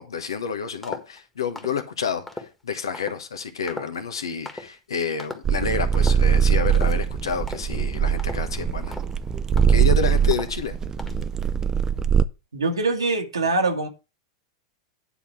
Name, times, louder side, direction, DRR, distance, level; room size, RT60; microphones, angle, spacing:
voice 1, 0.0-8.9 9.7-10.8, left 6 dB, 75° left, 1.2 m, -29 dB
sound 1, 0.8-1.2 1.6-1.8 2.3-2.5 2.9-3.2 3.7-4.1 4.5-4.7 5.2-5.6 5.9-6.3 6.7-7.0 7.5-7.8 8.2-8.5 8.9-9.2 9.6-9.9 10.3-10.6 11.0-11.3, left 2 dB, 10° left, 1.6 m, -37 dB
sound 2, 5.4-12.2, right 7 dB, 20° right, 0.6 m, -21 dB
voice 2, 12.5-13.9, right 3 dB, 85° right, 1.7 m, -23 dB
10.0 x 4.1 x 6.2 m
figure-of-eight pair, 95°, 2 cm